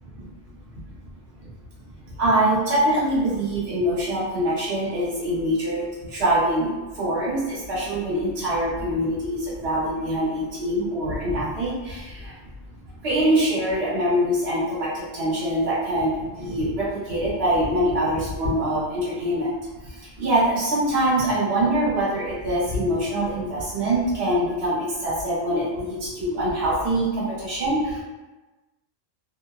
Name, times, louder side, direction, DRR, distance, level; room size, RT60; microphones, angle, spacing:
voice 1, 2.2-6.7 6.9-12.3 13.0-19.5 19.8-28.0, right 1 dB, 55° right, -9 dB, 1.2 m, -24 dB
2.6 x 2.1 x 2.3 m, 1.2 s
omnidirectional pair, 1.3 m